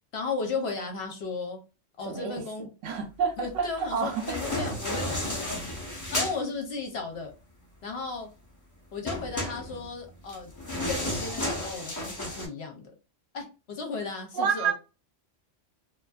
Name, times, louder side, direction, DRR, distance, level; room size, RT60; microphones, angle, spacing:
voice 1, 0.1-1.6 2.0-2.7 3.4-5.7 6.1-7.3 7.8-8.3 8.9-12.9 13.3-14.7, left 4 dB, 65° left, 0.9 m, -35 dB
voice 2, 2.1-2.4 2.8-4.7 14.3-14.7, right 6 dB, 75° right, 1.0 m, -29 dB
sound 1, 3.9-6.4 9.1-12.5, left 1 dB, 20° left, 0.5 m, -32 dB
2.5 x 2.3 x 2.3 m
omnidirectional pair, 1.3 m